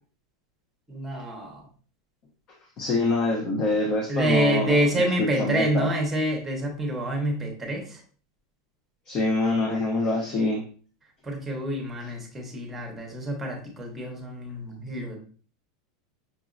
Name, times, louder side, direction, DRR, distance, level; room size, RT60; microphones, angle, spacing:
voice 1, 0.9-1.7 4.1-8.0 11.2-15.2, right 1 dB, 10° right, 1 dB, 1.0 m, -27 dB
voice 2, 2.8-5.9 9.1-10.6, left 2 dB, 35° left, 0 dB, 0.8 m, -25 dB
5.9 x 2.7 x 2.4 m, 0.41 s
supercardioid pair, 160°, 2 cm